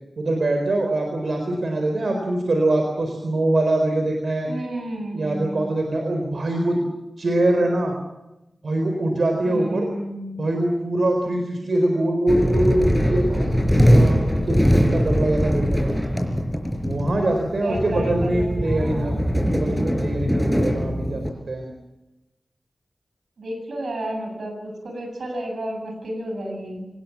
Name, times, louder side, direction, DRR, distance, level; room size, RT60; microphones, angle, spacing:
voice 1, 0.2-4.5 5.1-6.8 7.2-7.9 8.6-9.9 10.4-14.2 14.5-15.9 16.8-19.2 19.5-21.7, right 1 dB, 75° right, 3 dB, 4.3 m, -23 dB
voice 2, 4.5-5.6 9.4-10.5 17.6-19.2 23.4-26.9, right 1 dB, 90° right, 4 dB, 7.6 m, -32 dB
sound 1, 12.3-21.3, equal, ahead, 4.6 m, -21 dB
26.0 x 19.5 x 7.3 m, 0.96 s
wide cardioid pair, 65°, 0 cm